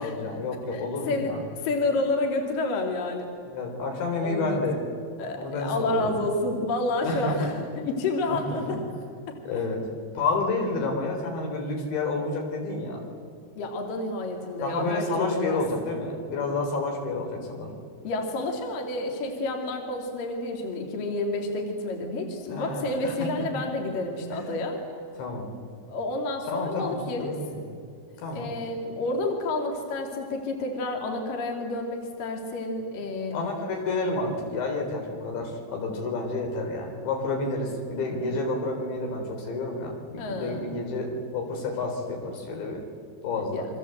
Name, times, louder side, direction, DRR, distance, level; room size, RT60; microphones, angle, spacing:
voice 1, 0.0-1.4 3.5-4.8 5.4-6.1 7.0-7.5 8.5-8.6 9.5-9.8 10.1-13.0 14.6-17.7 22.5-23.5 24.3-24.5 25.2-25.5 26.5-27.6 28.2-28.5 33.3-42.8 43.2-43.7, left 3 dB, 70° left, 2 dB, 6.1 m, -30 dB
voice 2, 0.7-1.3 1.6-3.3 4.2-4.6 5.2-8.8 9.3-9.4 13.6-15.6 18.0-24.8 25.9-27.3 28.3-33.4 40.2-40.6 43.5-43.7, left 2 dB, 50° left, 2 dB, 3.9 m, -29 dB
29.5 x 24.5 x 8.0 m, 2.3 s
omnidirectional pair, 5.3 m